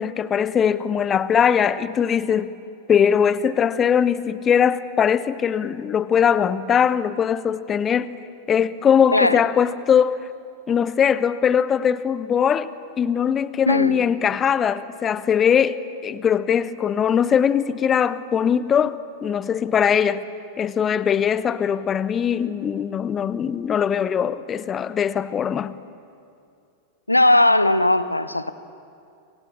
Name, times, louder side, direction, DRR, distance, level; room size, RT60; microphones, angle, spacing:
voice 1, 0.0-2.5 2.9-8.2 8.5-10.2 10.7-12.7 13.0-20.3 20.6-25.7, left 8 dB, 25° left, 0.9 m, -21 dB
voice 2, 9.1-9.4 13.7-14.0 27.1-28.5, left 1 dB, 85° left, 1.0 m, -18 dB
30.0 x 25.5 x 7.4 m
figure-of-eight pair, 90°, 0 cm